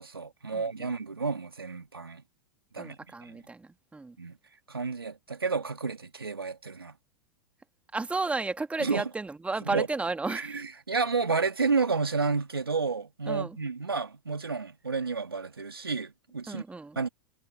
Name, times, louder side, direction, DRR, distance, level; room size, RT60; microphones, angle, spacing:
voice 1, 0.0-2.2 2.7-3.4 4.2-4.4 4.7-7.0 8.8-9.0 9.7-9.9 10.3-16.6 17.0-17.1, right 4 dB, 90° right, 2.6 m, -31 dB
voice 2, 0.5-1.0 2.8-4.2 7.9-10.6 13.3-13.6 16.5-17.0, right 3 dB, 10° right, 2.0 m, -33 dB
figure-of-eight pair, 90°, 12 cm